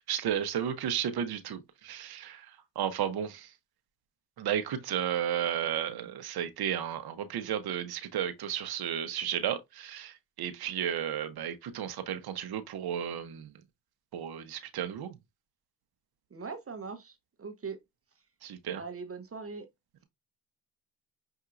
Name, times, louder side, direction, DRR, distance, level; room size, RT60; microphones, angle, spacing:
voice 1, 0.1-3.5 4.4-13.5 14.1-15.1 18.4-18.8, right 9 dB, 65° right, 0.9 m, -33 dB
voice 2, 16.3-17.8 18.7-19.7, right 5 dB, 35° right, 0.9 m, -41 dB
5.7 x 2.7 x 2.5 m
supercardioid pair, 65°, 41 cm